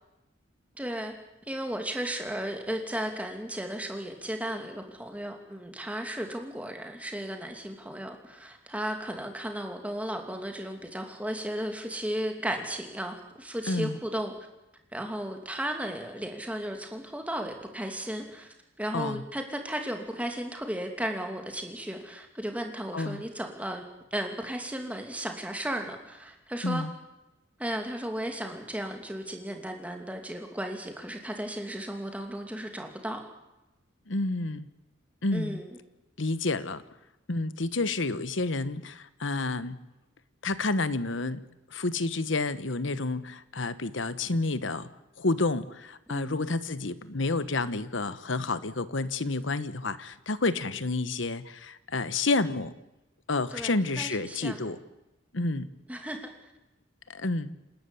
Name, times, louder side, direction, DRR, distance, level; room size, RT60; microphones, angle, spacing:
voice 1, 0.8-1.1 1.5-14.3 14.9-23.8 24.1-26.8 27.6-33.2 35.3-35.8 46.1-46.5 53.5-54.8 55.9-56.3, right 1 dB, 5° right, 4 dB, 2.8 m, -35 dB
voice 2, 13.7-14.0 18.9-19.2 22.9-23.2 26.6-26.9 34.1-34.7 35.2-35.6 36.2-36.8 37.3-39.8 40.4-41.4 41.7-44.9 45.2-52.7 53.3-54.8 55.3-55.7 57.1-57.5, left 3 dB, 75° left, 14 dB, 1.2 m, -29 dB
28.0 x 12.5 x 10.0 m, 0.96 s
head